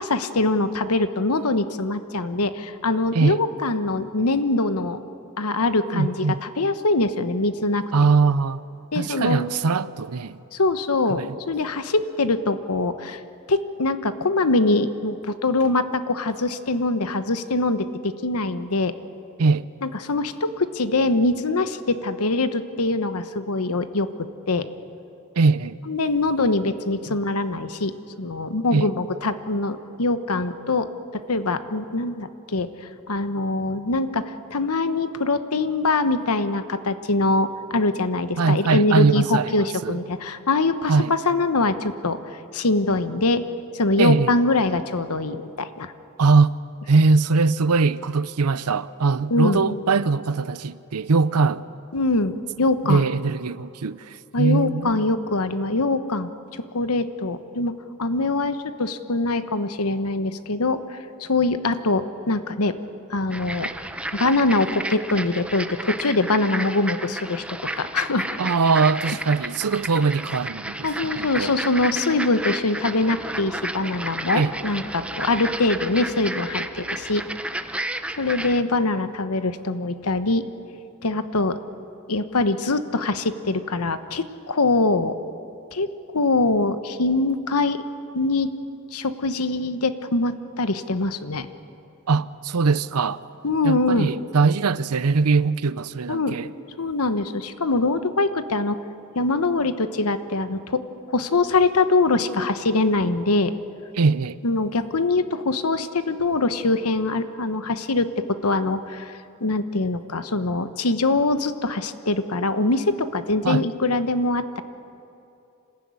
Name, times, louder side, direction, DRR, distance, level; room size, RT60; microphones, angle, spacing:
voice 1, 0.0-5.0 5.4-7.8 8.9-9.4 10.5-13.2 13.5-18.9 19.8-24.1 24.5-24.7 25.9-32.7 33.1-40.9 41.2-42.2 42.5-43.4 43.7-45.9 49.3-49.8 51.9-53.0 54.3-62.8 63.1-63.7 64.1-67.4 67.8-68.4 70.8-77.2 78.2-80.5 81.0-81.6 82.1-85.2 85.7-85.9 86.1-87.8 88.1-88.5 88.9-91.5 93.4-94.1 96.1-96.4 96.8-98.8 99.1-103.5 104.4-114.6, left 2 dB, 75° left, 1.1 m, -23 dB
voice 2, 5.9-6.4 7.9-8.6 8.9-10.4 11.1-11.4 19.4-19.6 25.4-25.7 27.1-27.2 28.7-28.9 38.4-40.0 40.9-41.1 44.0-44.4 46.2-46.5 46.9-51.6 52.9-55.0 68.4-70.9 71.2-71.5 74.3-74.5 92.1-93.2 93.6-96.5 104.0-104.4 113.4-113.6, right 4 dB, 90° right, 0.7 m, -21 dB
sound 1, 63.3-78.6, right 1 dB, 5° right, 0.7 m, -32 dB
26.0 x 15.5 x 9.6 m
head